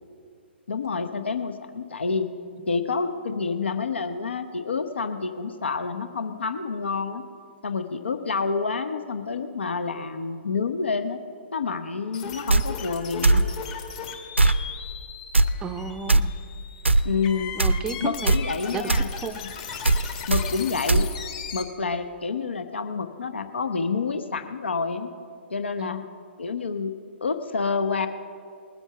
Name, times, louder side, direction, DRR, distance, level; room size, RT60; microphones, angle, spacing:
voice 1, 0.7-2.3 2.7-7.2 7.6-11.2 11.5-13.4 17.0-17.5 18.0-19.1 20.3-21.1 21.5-25.1 25.5-26.0 26.4-26.9 27.2-28.1, left 4 dB, 70° left, 9 dB, 0.8 m, -28 dB
sound 1, 12.1-21.6, left 7 dB, 35° left, 1.8 m, -38 dB
sound 2, 12.5-12.6 13.2-13.4 14.4-14.6 15.3-15.5 16.1-16.2 16.8-17.0 17.6-17.8 18.3-18.4 18.9-19.1 19.8-20.0 20.3-20.4 20.9-21.0, right 2 dB, 90° right, 0.5 m, -18 dB
voice 2, 15.6-16.3 17.5-18.3 18.7-18.9 19.2-19.4 25.8-26.1, right 5 dB, 15° right, 10 dB, 0.5 m, -33 dB
20.0 x 8.1 x 5.8 m, 2.3 s
figure-of-eight pair, 125°, 6 cm